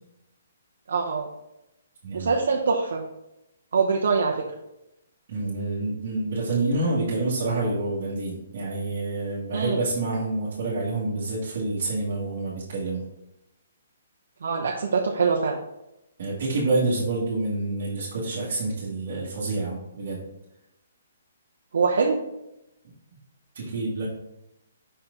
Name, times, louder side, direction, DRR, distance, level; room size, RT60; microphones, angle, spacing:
voice 1, 0.9-1.3 2.1-3.0 3.7-4.5 9.5-9.8 14.4-15.6 21.7-22.2, right 5 dB, 70° right, -1 dB, 0.8 m, -23 dB
voice 2, 5.3-13.0 16.2-20.2 23.5-24.1, right 2 dB, 45° right, -9 dB, 1.7 m, -28 dB
5.6 x 4.4 x 3.7 m, 0.89 s
hypercardioid pair, 170°, 0 cm